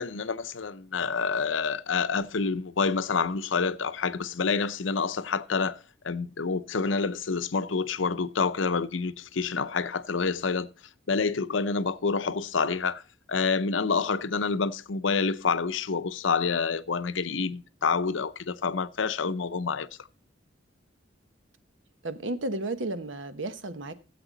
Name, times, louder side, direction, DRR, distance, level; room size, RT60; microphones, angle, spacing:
voice 1, 0.0-5.8 6.0-10.7 11.1-13.0 13.3-19.9, left 5 dB, 85° left, 0.7 m, -28 dB
voice 2, 22.0-23.9, right 2 dB, 85° right, 1.1 m, -33 dB
13.5 x 8.0 x 4.0 m
head